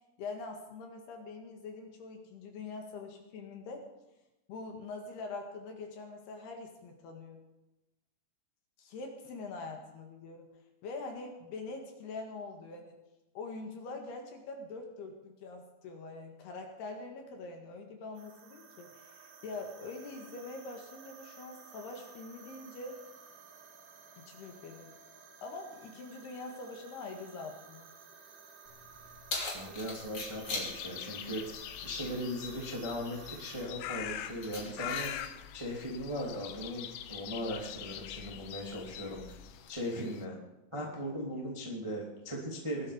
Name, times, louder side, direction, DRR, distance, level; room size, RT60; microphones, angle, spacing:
voice 1, 0.2-3.9 4.5-7.4 8.8-10.5 10.8-13.0 13.4-23.0 24.2-24.9 25.4-27.9, left 3 dB, 65° left, 3 dB, 3.5 m, -44 dB
sound 1, 18.1-33.7, right 5 dB, 75° right, 4.5 m, -54 dB
Keys jangling, 28.7-39.7, left 3 dB, 35° left, 3.0 m, -45 dB
voice 2, 29.5-31.4 31.8-35.1 35.5-39.3 39.7-40.4 40.7-42.9, equal, 10° right, -2 dB, 1.3 m, -38 dB
sound 2, 30.5-40.2, left 11 dB, 90° left, 2.2 m, -44 dB
20.5 x 12.0 x 5.1 m, 0.97 s
omnidirectional pair, 5.6 m